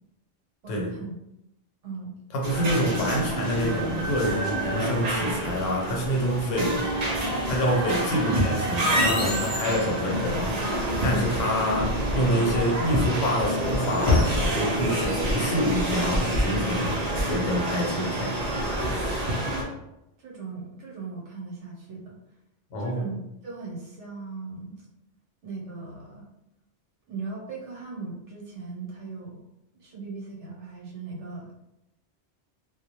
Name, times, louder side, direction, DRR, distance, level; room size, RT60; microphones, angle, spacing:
voice 1, 0.6-1.1 1.8-2.2 11.0-11.4 20.2-22.1 22.8-24.8 25.4-26.2 27.1-29.4 29.7-31.6, right 4 dB, 80° right, -3 dB, 1.0 m, -38 dB
voice 2, 2.3-6.9 7.5-16.9 17.2-19.3 22.7-23.0, equal, 90° left, -1 dB, 1.0 m, -27 dB
sound 1, 2.4-19.6, right 1 dB, 60° right, 0.4 m, -28 dB
sound 2, 7.1-16.5, left 2 dB, 55° left, 0.4 m, -32 dB
2.2 x 2.0 x 2.7 m, 0.89 s
omnidirectional pair, 1.2 m